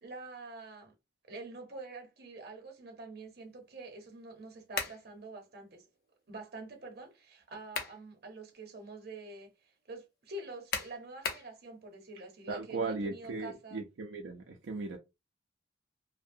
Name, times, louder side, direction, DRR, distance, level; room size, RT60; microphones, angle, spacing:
voice 1, 0.0-0.9 1.3-5.9 6.3-13.9, right 2 dB, 55° right, 0.8 m, -46 dB
sound 1, 4.7-5.0 7.4-8.0 8.5-8.6 10.7-11.5, left 5 dB, 55° left, 0.6 m, -36 dB
voice 2, 12.5-15.0, right 3 dB, 80° right, 0.4 m, -37 dB
2.6 x 2.0 x 2.6 m
head